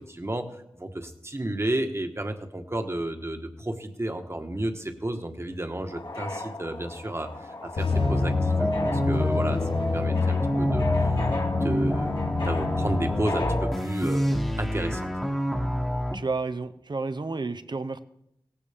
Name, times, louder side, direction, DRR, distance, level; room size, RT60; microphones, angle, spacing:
voice 1, 0.0-14.2 14.6-15.1, right 1 dB, 30° right, 5 dB, 1.5 m, -32 dB
sound 1, 5.9-13.8, left 2 dB, 60° left, 2.3 m, -37 dB
sound 2, 7.8-13.6, left 4 dB, 85° left, 0.9 m, -27 dB
sound 3, 7.9-16.2, equal, 5° left, 1.4 m, -28 dB
voice 2, 16.1-18.0, right 3 dB, 55° right, 11 dB, 0.8 m, -31 dB
17.5 x 15.5 x 3.6 m, 0.79 s
wide cardioid pair, 65°, 9 cm